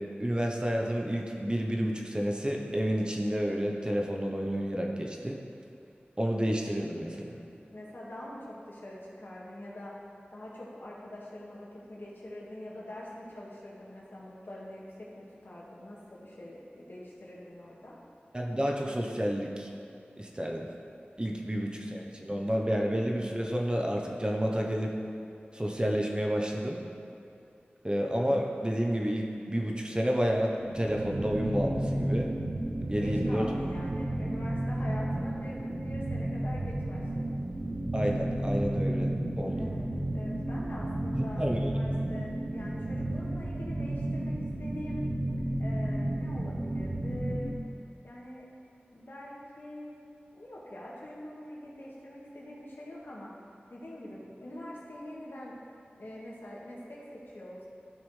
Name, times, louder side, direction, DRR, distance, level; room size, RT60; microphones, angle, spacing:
voice 1, 0.0-5.4 6.2-7.4 18.3-19.7 20.2-20.7 21.2-25.0 25.5-26.9 27.8-32.3 32.9-33.5 37.9-39.7 41.1-41.7, equal, 25° right, 0 dB, 1.0 m, -30 dB
voice 2, 7.7-9.9 10.3-18.0 21.5-21.6 32.9-37.5 39.5-39.9 40.1-45.0 45.6-47.5 48.0-48.5 48.9-50.0 50.3-53.3 53.7-55.6 56.0-57.7, left 1 dB, 65° left, -5 dB, 2.0 m, -44 dB
sound 1, 30.5-47.6, right 1 dB, 55° right, 1.0 m, -32 dB
13.0 x 5.9 x 3.4 m, 2.6 s
wide cardioid pair, 45°, 4 cm